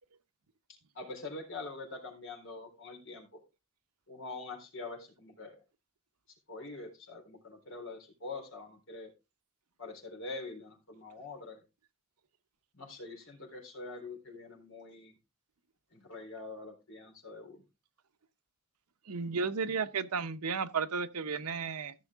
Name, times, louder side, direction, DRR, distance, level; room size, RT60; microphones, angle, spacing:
voice 1, 0.7-3.4 4.1-5.6 6.3-9.1 9.8-11.6 12.7-15.1 15.9-17.6, left 3 dB, 60° left, 3.8 m, -45 dB
voice 2, 19.0-21.9, right 5 dB, 90° right, 0.9 m, -33 dB
15.0 x 6.4 x 3.6 m
head